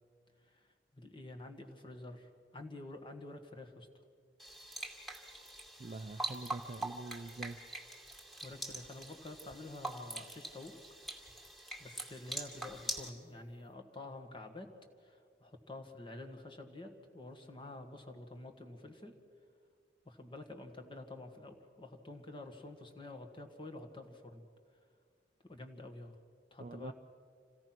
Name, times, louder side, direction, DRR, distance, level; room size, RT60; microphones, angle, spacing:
voice 1, 0.9-3.9 8.4-10.7 11.8-14.7 15.0-19.1 20.1-24.4 25.5-26.2 26.5-26.9, left 2 dB, 30° left, 4 dB, 1.8 m, -49 dB
sound 1, 4.4-13.1, right 1 dB, ahead, 2.4 m, -44 dB
voice 2, 5.8-7.6 26.6-26.9, right 3 dB, 40° right, 12 dB, 0.5 m, -44 dB
27.0 x 16.5 x 6.0 m, 2.1 s
head